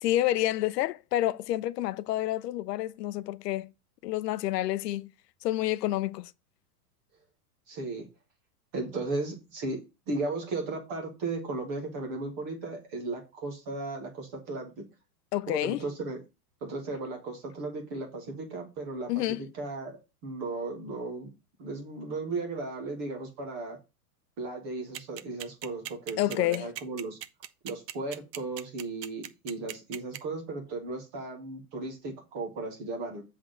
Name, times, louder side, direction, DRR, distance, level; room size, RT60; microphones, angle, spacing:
voice 1, 0.0-3.7 4.0-5.1 5.4-6.3 15.3-15.8 19.1-19.4 26.2-26.7, left 14 dB, 85° left, 0.6 m, -29 dB
voice 2, 7.7-8.1 8.7-9.8 10.1-14.8 15.5-16.2 16.6-20.0 20.2-21.3 21.6-23.8 24.4-27.2 27.6-33.2, right 3 dB, 10° right, 0.4 m, -35 dB
sound 1, 24.9-30.2, right 12 dB, 90° right, 1.0 m, -38 dB
7.9 x 3.8 x 6.2 m
supercardioid pair, 175°, 47 cm